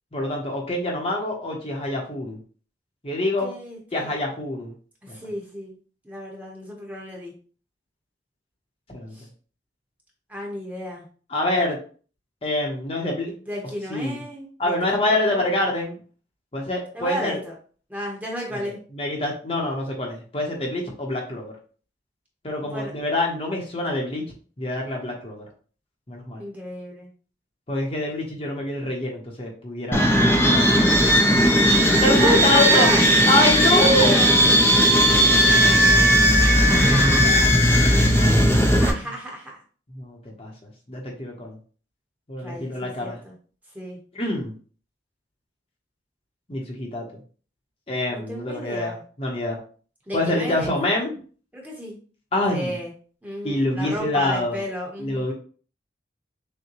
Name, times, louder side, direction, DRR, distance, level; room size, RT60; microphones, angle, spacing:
voice 1, 0.1-2.4 3.0-3.5 3.9-4.7 5.1-5.2 8.9-9.1 11.3-11.8 12.4-13.3 13.9-14.2 14.6-16.0 16.5-17.4 18.6-21.5 22.4-24.2 24.6-25.5 26.1-26.4 27.7-30.7 32.0-32.9 33.3-34.3 35.1-35.9 36.7-39.0 39.9-40.5 40.9-41.6 42.3-43.2 44.1-44.5 46.5-47.0 47.9-49.6 50.1-51.2 52.3-52.8 53.4-54.6 55.0-55.3, left 1 dB, 30° left, -1 dB, 0.9 m, -26 dB
voice 2, 3.4-4.1 5.0-5.8 6.0-7.3 9.1-9.3 10.3-11.1 13.5-15.5 16.9-17.5 17.9-18.8 22.6-22.9 26.4-27.1 32.2-33.0 34.0-34.3 34.6-35.2 36.6-37.3 38.7-39.6 42.4-43.3 43.7-44.0 48.1-49.0 50.1-50.7 51.5-52.0 52.5-52.9 53.2-55.3, equal, 10° right, -3 dB, 1.0 m, -33 dB
sound 1, 29.9-38.9, equal, 10° left, 0.5 m, -17 dB
6.5 x 2.2 x 3.0 m, 0.41 s
head